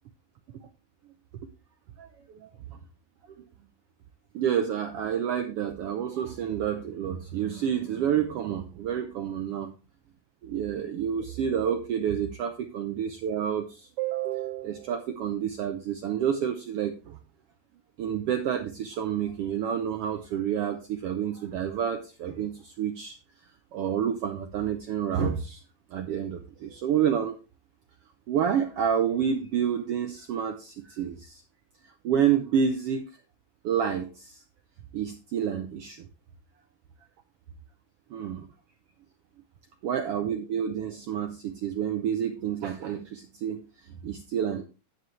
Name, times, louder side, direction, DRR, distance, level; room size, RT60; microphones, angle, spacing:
voice 1, 2.3-2.8 4.3-9.7 10.4-17.2 18.0-23.1 23.7-25.6 25.9-27.4 28.3-31.4 32.0-33.1 33.6-34.4 34.9-36.1 38.1-38.5 39.8-43.6 44.0-44.6, right 8 dB, 75° right, 6 dB, 1.4 m, -29 dB
9.4 x 9.1 x 3.2 m, 0.32 s
omnidirectional pair, 3.5 m